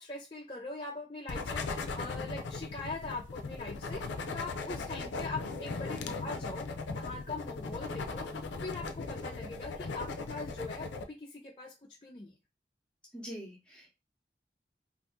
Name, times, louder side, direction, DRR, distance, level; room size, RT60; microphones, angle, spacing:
voice 1, 0.0-4.0 4.3-11.7 12.0-12.3, left 3 dB, 30° left, -1 dB, 0.4 m, -42 dB
sound 1, 1.3-11.0, left 3 dB, 90° left, 0.5 m, -38 dB
voice 2, 13.1-13.9, equal, 5° left, -3 dB, 0.8 m, -44 dB
2.6 x 2.5 x 3.5 m, 0.26 s
head